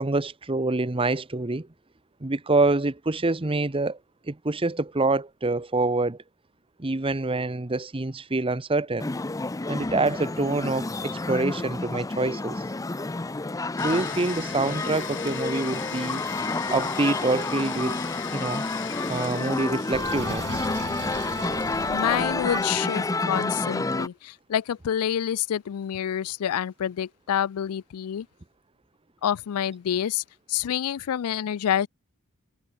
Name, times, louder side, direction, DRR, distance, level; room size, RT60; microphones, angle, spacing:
voice 1, 0.0-1.7 2.2-4.0 4.3-6.2 6.8-9.1 9.7-12.6 13.8-16.2 16.7-18.0 18.3-18.6 19.1-20.7 22.5-22.6, right 2 dB, 25° right, 0.9 m, -26 dB
sound 1, 9.0-24.1, left 3 dB, 15° left, 0.5 m, -29 dB
Domestic sounds home sounds, 13.8-20.4, left 9 dB, 55° left, 4.6 m, -39 dB
Sink (filling or washing), 19.9-22.7, right 3 dB, 55° right, 2.1 m, -38 dB
voice 2, 21.9-28.3 29.2-31.9, left 9 dB, 75° left, 0.4 m, -28 dB
head